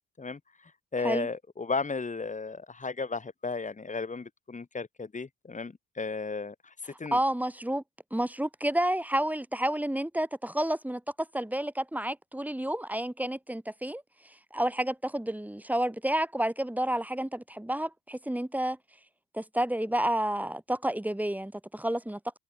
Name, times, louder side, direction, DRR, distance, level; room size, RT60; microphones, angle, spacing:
voice 1, 0.9-6.5 7.0-7.2, left 4 dB, 25° left, 2.5 m, -34 dB
voice 2, 7.1-7.8 8.1-11.0 11.3-18.8 19.3-22.2, right 1 dB, 5° right, 1.8 m, -30 dB
cardioid pair, 90°, 30 cm